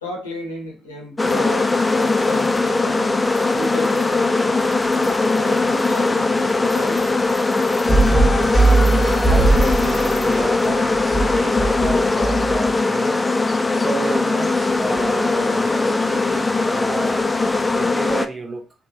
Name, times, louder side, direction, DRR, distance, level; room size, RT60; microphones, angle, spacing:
voice 1, 0.0-4.4 4.9-7.0, left 1 dB, 85° left, -1 dB, 0.7 m, -33 dB
sound 1, 1.2-18.3, left 3 dB, 20° left, 0.3 m, -20 dB
sound 2, 1.2-17.9, right 1 dB, 80° right, 0.7 m, -43 dB
sound 3, 7.8-12.7, right 2 dB, 5° left, 0.9 m, -20 dB
voice 2, 9.2-13.2 13.7-17.2 17.7-18.7, right 3 dB, 35° right, 4 dB, 0.7 m, -31 dB
3.0 x 2.2 x 2.7 m, 0.30 s
figure-of-eight pair, 45°, 0 cm